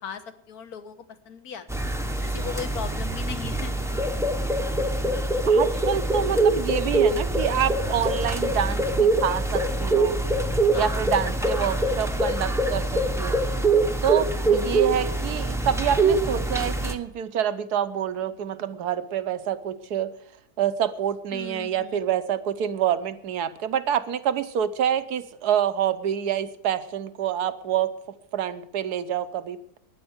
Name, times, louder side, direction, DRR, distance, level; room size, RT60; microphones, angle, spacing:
voice 1, 0.0-3.8 5.4-5.5 10.7-11.1 16.2-16.4 21.3-22.1, left 7 dB, 65° left, 10 dB, 1.6 m, -38 dB
sound 1, 1.7-16.9, right 2 dB, 5° right, 0.7 m, -24 dB
voice 2, 5.5-10.2 10.7-13.4 14.0-20.1 20.6-27.9 28.3-29.8, right 9 dB, 75° right, 12 dB, 1.3 m, -27 dB
12.5 x 9.8 x 7.9 m, 0.72 s
omnidirectional pair, 1.7 m